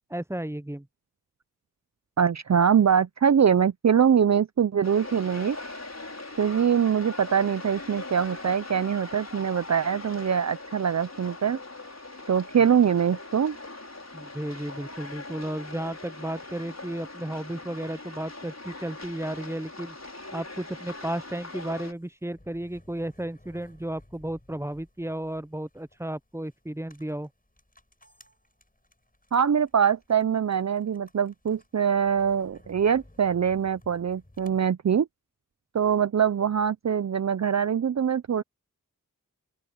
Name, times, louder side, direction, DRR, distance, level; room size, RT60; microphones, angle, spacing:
voice 1, 0.1-0.9 14.1-20.0 20.3-27.3, right 1 dB, 10° right, 0.6 m, -34 dB
voice 2, 2.2-5.6 6.4-11.6 12.3-13.6 29.3-35.1 35.7-38.4, right 7 dB, 55° right, 0.5 m, -23 dB
sound 1, 4.8-21.9, left 2 dB, 50° left, 5.3 m, -41 dB
sound 2, 20.9-34.6, left 1 dB, 25° left, 6.4 m, -57 dB
open air
wide cardioid pair, 45°, 33 cm